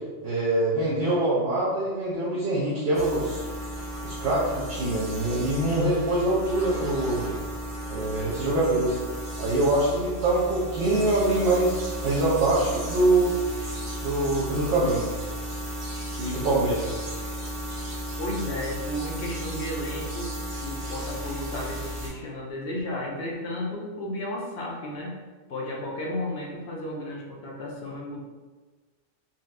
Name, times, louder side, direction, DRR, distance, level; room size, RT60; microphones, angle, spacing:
voice 1, 0.2-3.4 4.0-7.3 7.9-9.0 9.4-13.3 14.0-15.0 16.2-17.0, right 2 dB, 65° right, -7 dB, 0.9 m, -24 dB
sound 1, 2.9-22.1, equal, 45° right, 1.1 m, -34 dB
voice 2, 18.2-20.3 20.6-25.2 25.5-28.2, left 1 dB, 60° left, -2 dB, 0.8 m, -33 dB
3.9 x 2.1 x 2.5 m, 1.3 s
omnidirectional pair, 1.2 m